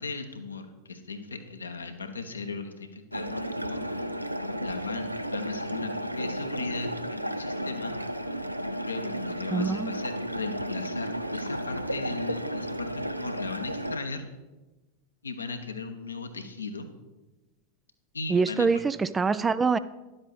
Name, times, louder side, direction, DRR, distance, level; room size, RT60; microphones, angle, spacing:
voice 1, 0.0-4.1 4.6-8.0 8.8-14.3 15.2-16.9 18.1-18.7, left 4 dB, 75° left, 6 dB, 1.0 m, -37 dB
sound 1, 3.1-14.0, equal, 90° right, 0.5 m, -33 dB
voice 2, 9.5-9.9 18.3-19.8, right 4 dB, 15° right, 14 dB, 0.3 m, -24 dB
11.5 x 7.8 x 4.1 m, 1.1 s
figure-of-eight pair, 90°, 0 cm